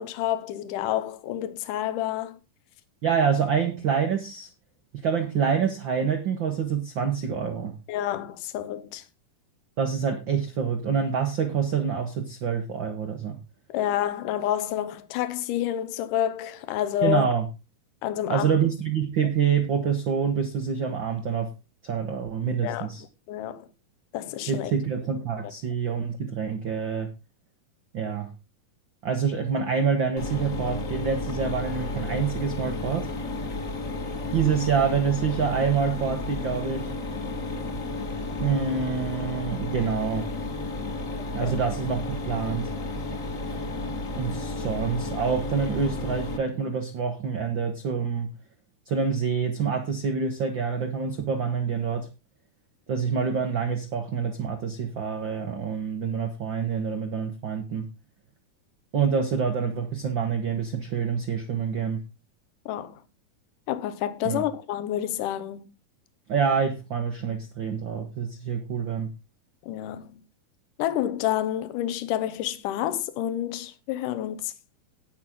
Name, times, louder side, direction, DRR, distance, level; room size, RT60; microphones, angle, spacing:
voice 1, 0.0-2.4 7.9-9.0 13.7-17.3 18.0-18.5 22.6-22.9 23.3-23.7 24.1-24.7 41.4-41.6 62.7-63.0 63.7-65.7 69.6-70.2 70.8-74.5, left 12 dB, 75° left, 2.4 m, -29 dB
voice 2, 3.0-4.5 4.9-7.8 9.8-13.4 17.0-17.5 18.3-21.5 21.8-23.0 24.5-27.1 27.9-28.3 29.0-33.1 34.3-36.9 38.4-40.3 41.3-42.7 44.2-48.3 48.9-52.1 52.9-57.8 58.9-62.0 64.2-64.4 66.3-69.1, right 6 dB, 80° right, 1.0 m, -26 dB
Mechanisms, 30.2-46.4, left 2 dB, 35° left, 1.3 m, -32 dB
18.0 x 6.1 x 3.6 m
omnidirectional pair, 4.0 m